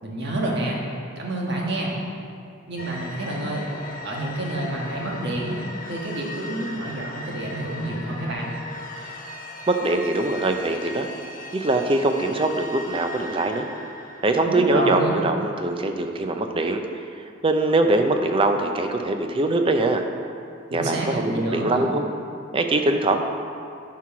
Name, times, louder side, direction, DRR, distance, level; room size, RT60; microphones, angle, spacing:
voice 1, 0.0-0.8 1.1-1.9 2.7-3.6 4.0-5.6 5.9-8.5 14.4-15.2 20.7-21.9, right 1 dB, 55° right, -2 dB, 1.5 m, -28 dB
sound 1, 2.8-15.3, left 2 dB, 40° left, 0.7 m, -38 dB
voice 2, 9.7-11.1 11.5-13.7 14.2-16.8 17.4-20.0 20.7-22.0 22.5-23.2, right 2 dB, 25° right, 5 dB, 0.5 m, -22 dB
9.9 x 4.7 x 5.8 m, 2.5 s
head